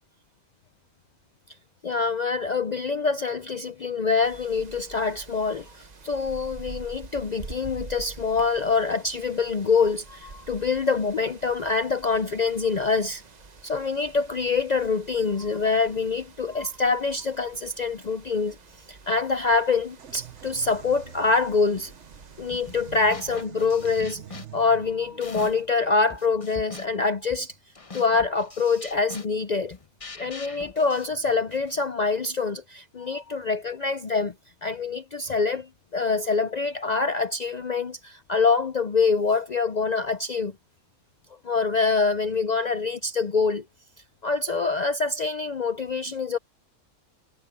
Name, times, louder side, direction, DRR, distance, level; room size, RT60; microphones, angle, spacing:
voice 1, 1.8-13.2 13.6-18.6 18.9-21.9 22.4-27.5 27.9-29.7 30.2-34.3 34.6-40.5 41.4-43.6 44.2-46.4, left 4 dB, 70° left, 0.4 m, -25 dB
sound 1, 4.2-23.5, right 4 dB, 35° right, 0.9 m, -47 dB
sound 2, 20.0-27.6, right 10 dB, 55° right, 1.2 m, -47 dB
sound 3, 22.5-22.8 23.1-25.7 26.1-31.8, left 4 dB, 25° left, 1.1 m, -43 dB
omnidirectional pair, 1.5 m